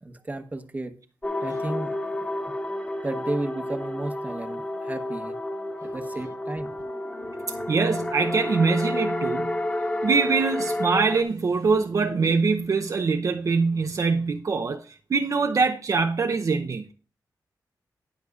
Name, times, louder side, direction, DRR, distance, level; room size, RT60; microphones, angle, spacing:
voice 1, 0.0-1.0 1.4-2.0 3.0-5.4 5.8-6.7, right 2 dB, 25° right, 1.0 m, -33 dB
sound 1, 1.2-11.2, left 1 dB, 20° left, 1.6 m, -30 dB
voice 2, 7.7-9.6 10.0-16.8, right 4 dB, 55° right, 0.6 m, -23 dB
19.0 x 6.5 x 2.4 m
wide cardioid pair, 140°, 7 cm